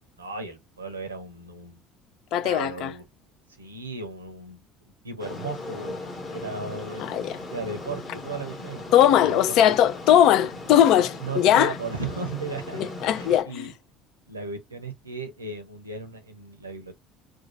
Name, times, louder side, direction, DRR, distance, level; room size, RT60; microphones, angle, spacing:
voice 1, 0.2-1.8 2.4-3.1 3.6-6.0 6.3-9.8 11.2-12.9 13.1-13.7 14.3-17.0, right 3 dB, 85° right, 0.6 m, -36 dB
voice 2, 2.3-2.9 7.0-7.4 8.9-11.7 12.7-13.7, left 10 dB, 55° left, 0.3 m, -20 dB
sound 1, 5.2-13.4, left 2 dB, 35° left, 1.0 m, -38 dB
2.6 x 2.2 x 2.7 m
figure-of-eight pair, 60°, 0 cm